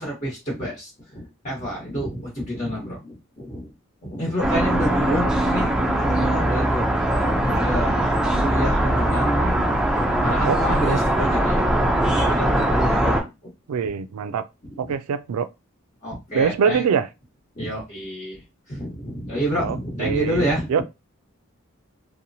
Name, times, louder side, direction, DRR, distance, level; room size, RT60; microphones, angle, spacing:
voice 1, 0.0-3.6 4.0-5.7 6.0-8.1 8.4-9.7 10.1-13.3 14.6-14.7 16.0-16.8 17.6-18.4 18.7-20.7, equal, 35° left, 1.1 m, -28 dB
sound 1, 4.4-13.2, right 1 dB, 5° right, 0.3 m, -21 dB
voice 2, 4.7-5.2 10.4-11.0 13.7-14.4 14.8-15.5 16.3-17.1 19.6-20.4 20.7-20.8, right 6 dB, 90° right, 0.3 m, -24 dB
2.9 x 2.1 x 2.7 m
head